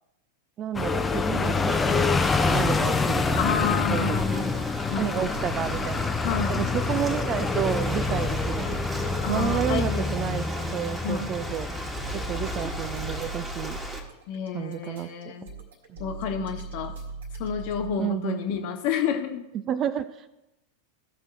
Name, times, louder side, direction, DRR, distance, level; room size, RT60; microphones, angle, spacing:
voice 1, 0.6-4.2 5.0-6.1 6.5-11.7 12.1-13.8 14.5-15.4 15.9-16.0 18.0-18.4 19.5-20.3, right 9 dB, 30° right, 13 dB, 0.5 m, -31 dB
sound 1, 0.7-13.3, left 4 dB, 15° left, 0.7 m, -27 dB
voice 2, 3.4-5.3 6.2-6.6 9.2-10.1 11.0-11.3 14.3-15.5 16.0-16.9 17.4-19.4, left 7 dB, 45° left, 5 dB, 1.3 m, -30 dB
Ocean, 4.1-14.0, equal, 5° right, 1.6 m, -37 dB
sound 2, 5.2-17.9, right 3 dB, 60° right, 1.8 m, -40 dB
16.0 x 5.9 x 3.2 m, 0.93 s
figure-of-eight pair, 90°, 0 cm